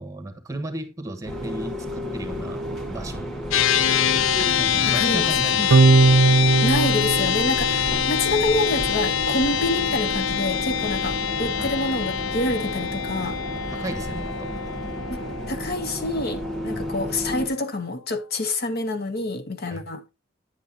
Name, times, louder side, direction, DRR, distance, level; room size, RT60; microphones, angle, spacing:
voice 1, 0.0-3.3 4.6-5.9 9.5-9.6 11.6-11.7 13.7-14.6 16.6-16.9 19.7-19.8, right 2 dB, 15° right, 1.3 m, -35 dB
sound 1, 1.2-17.5, equal, ahead, 1.9 m, -32 dB
sound 2, 3.5-17.0, left 9 dB, 75° left, 0.5 m, -25 dB
voice 2, 4.9-5.3 5.6-5.7 6.6-13.4 15.1-15.2 15.5-20.0, left 2 dB, 50° left, 0.8 m, -27 dB
sound 3, 5.7-8.3, right 3 dB, 70° right, 0.4 m, -18 dB
9.6 x 8.3 x 2.8 m
head